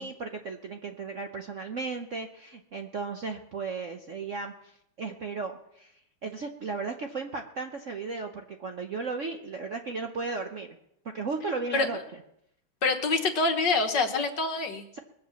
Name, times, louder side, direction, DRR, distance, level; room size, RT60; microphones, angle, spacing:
voice 1, 0.0-10.8 11.1-12.0 14.9-15.0, right 4 dB, 55° right, 5 dB, 0.9 m, -35 dB
voice 2, 12.8-14.9, left 3 dB, 60° left, 6 dB, 1.8 m, -26 dB
21.5 x 8.0 x 7.0 m, 0.77 s
omnidirectional pair, 2.3 m